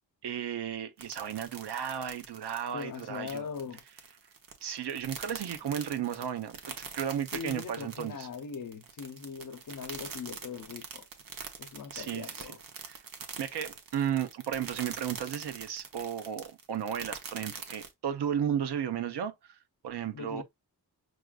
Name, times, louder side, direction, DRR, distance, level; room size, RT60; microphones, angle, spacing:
voice 1, 0.2-3.4 4.6-8.3 11.9-12.6 12.8-13.0 13.4-19.6 19.8-20.4, right 9 dB, 85° right, 0.8 m, -34 dB
sound 1, 1.0-17.9, right 5 dB, 60° right, 1.0 m, -44 dB
voice 2, 2.7-3.8 7.3-11.1 11.6-12.6 20.1-20.4, left 6 dB, 55° left, 0.8 m, -40 dB
6.4 x 2.5 x 2.3 m
wide cardioid pair, 170°, 39 cm